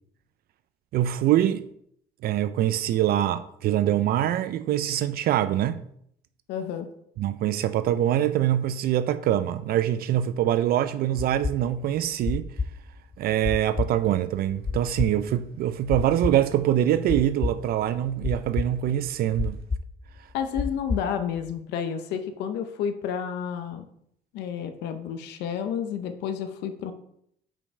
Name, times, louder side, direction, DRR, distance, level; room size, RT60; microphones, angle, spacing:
voice 1, 0.9-1.7 2.2-5.8 7.2-12.5 13.2-19.6, right 11 dB, 65° right, 0.4 m, -24 dB
voice 2, 6.5-6.9 20.3-23.8 24.3-26.9, left 8 dB, 85° left, 0.7 m, -30 dB
sound 1, 11.2-21.5, left 4 dB, 20° left, 0.4 m, -30 dB
5.4 x 5.3 x 4.7 m
cardioid pair, 110°, 17 cm